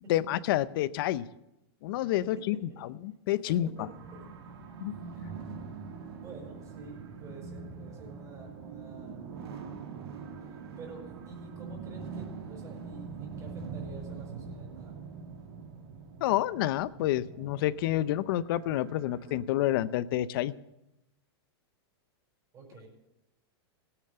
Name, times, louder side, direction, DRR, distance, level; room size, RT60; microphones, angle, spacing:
voice 1, 0.1-1.2 1.8-3.7 4.8-4.9 16.2-20.5, left 13 dB, 55° left, 17 dB, 0.7 m, -29 dB
voice 2, 3.4-4.5 5.1-5.3 5.8-9.3 10.8-15.0 22.5-22.9, right 3 dB, 25° right, 1 dB, 5.1 m, -49 dB
sound 1, 3.8-19.4, right 5 dB, 70° right, 2.3 m, -43 dB
17.5 x 9.0 x 6.8 m, 0.90 s
supercardioid pair, 145°, 14 cm